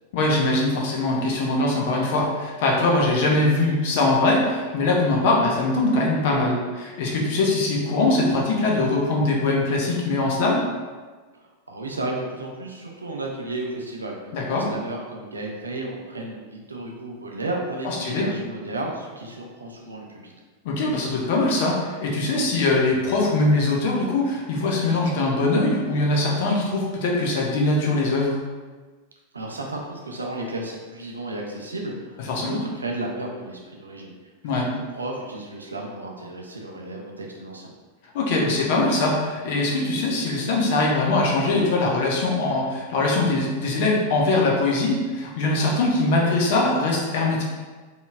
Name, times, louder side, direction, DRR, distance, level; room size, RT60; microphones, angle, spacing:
voice 1, 0.1-10.7 14.3-14.7 17.8-18.3 20.6-28.4 32.3-32.6 34.4-34.7 38.1-47.4, left 2 dB, 50° left, -2 dB, 0.8 m, -22 dB
voice 2, 11.3-20.3 29.3-34.1 34.6-34.7 34.9-37.7, right 2 dB, 75° right, 0 dB, 0.6 m, -33 dB
4.1 x 3.0 x 2.4 m, 1.3 s
figure-of-eight pair, 90°, 0 cm